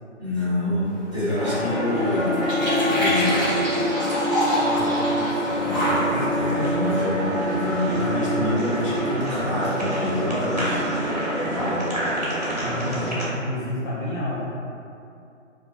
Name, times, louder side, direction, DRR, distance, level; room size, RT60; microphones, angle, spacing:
voice 1, 0.2-2.3 3.0-3.6 5.6-10.9 11.4-11.8 12.5-12.8, left 1 dB, 25° left, -12 dB, 0.6 m, -27 dB
sound 1, 0.8-8.0, left 1 dB, 5° left, 1.0 m, -29 dB
sound 2, 1.3-13.3, equal, 35° right, 0.4 m, -25 dB
voice 2, 4.7-6.8 7.9-8.8 12.6-14.5, left 1 dB, 70° left, -9 dB, 0.8 m, -32 dB
3.0 x 2.4 x 2.3 m, 2.6 s
figure-of-eight pair, 150°, 39 cm